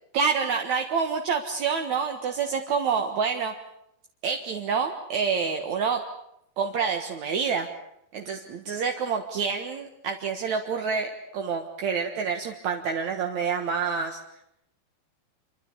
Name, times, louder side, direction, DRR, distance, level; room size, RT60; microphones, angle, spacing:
voice 1, 0.1-3.5 4.2-6.0 6.6-7.7 8.1-14.2, right 6 dB, 60° right, 3 dB, 2.2 m, -27 dB
27.5 x 25.0 x 7.1 m, 0.79 s
omnidirectional pair, 5.1 m